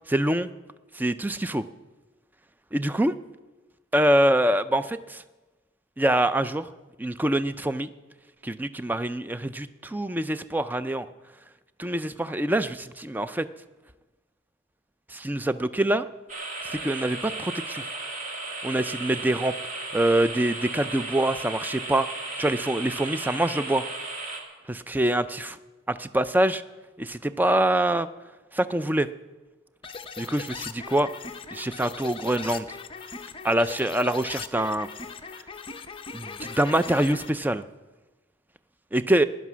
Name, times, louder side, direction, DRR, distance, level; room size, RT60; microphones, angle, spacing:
voice 1, 0.1-0.5 1.0-1.6 2.7-3.2 3.9-5.2 6.0-6.7 7.0-7.9 8.4-11.1 11.8-13.5 15.1-16.1 16.6-17.8 18.6-19.5 19.9-22.1 22.4-23.8 24.7-25.6 25.9-26.6 27.0-28.1 28.5-29.1 30.2-31.1 31.5-32.8 33.4-34.9 36.1-37.6 38.9-39.2, right 1 dB, 10° right, 13 dB, 0.4 m, -25 dB
sound 1, 16.3-24.4, right 2 dB, 40° right, 2.0 m, -35 dB
sound 2, 29.8-37.3, left 5 dB, 25° left, 0.7 m, -39 dB
16.5 x 10.5 x 6.1 m, 1.2 s
head